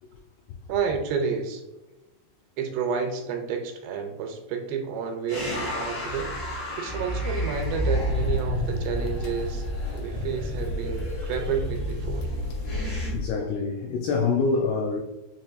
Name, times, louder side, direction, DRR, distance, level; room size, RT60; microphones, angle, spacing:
voice 1, 0.7-1.6 2.6-6.3 6.7-9.7 9.9-12.3, right 6 dB, 85° right, 2.6 m, -30 dB
sound 1, 5.3-13.1, equal, 55° left, 1.4 m, -31 dB
sound 2, 7.5-13.3, left 3 dB, 75° left, 2.6 m, -33 dB
voice 2, 13.1-15.0, left 4 dB, 90° left, 2.1 m, -25 dB
6.9 x 3.0 x 2.5 m
omnidirectional pair, 5.0 m